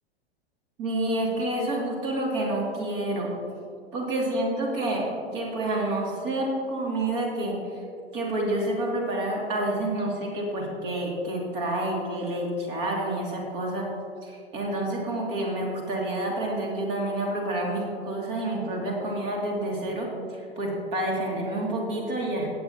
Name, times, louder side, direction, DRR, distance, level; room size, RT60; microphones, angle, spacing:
voice 1, 0.8-3.3 3.9-5.0 5.3-7.8 8.1-13.9 14.2-22.5, right 1 dB, 35° right, -2 dB, 2.7 m, -28 dB
17.0 x 8.4 x 2.9 m, 2.3 s
figure-of-eight pair, 100°, 32 cm